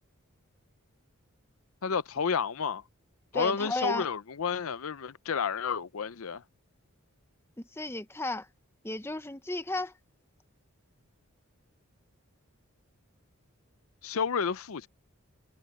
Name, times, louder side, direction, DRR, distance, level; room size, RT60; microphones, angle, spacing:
voice 1, 1.8-2.8 3.3-6.4 14.0-14.9, left 6 dB, 70° left, 0.6 m, -30 dB
voice 2, 3.3-4.1 7.6-8.5 8.8-9.9, left 2 dB, 10° left, 0.8 m, -34 dB
head